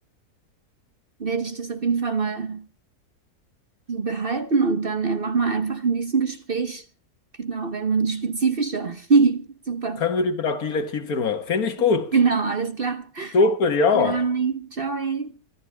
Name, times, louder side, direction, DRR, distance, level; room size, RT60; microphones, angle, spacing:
voice 1, 1.2-2.7 3.9-6.8 7.4-10.0 12.1-13.3 13.9-15.4, right 5 dB, 40° right, 1.0 m, -24 dB
voice 2, 10.0-12.1 13.3-14.2, left 4 dB, 65° left, 1.8 m, -22 dB
27.5 x 12.0 x 3.4 m
omnidirectional pair, 1.7 m